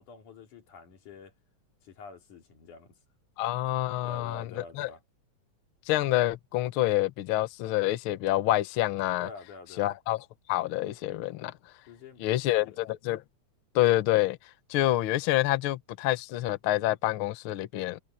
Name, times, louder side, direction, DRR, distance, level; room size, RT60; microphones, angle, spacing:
voice 1, 0.0-1.3 1.8-3.0 4.0-5.0 9.2-9.9 11.9-12.9, left 4 dB, 90° left, 4.6 m, -47 dB
voice 2, 3.4-4.4 4.8-4.9 5.9-9.3 9.8-10.2 10.5-11.5 12.2-13.2 13.7-14.4 14.7-18.0, left 15 dB, 70° left, 1.2 m, -27 dB
omnidirectional pair, 3.4 m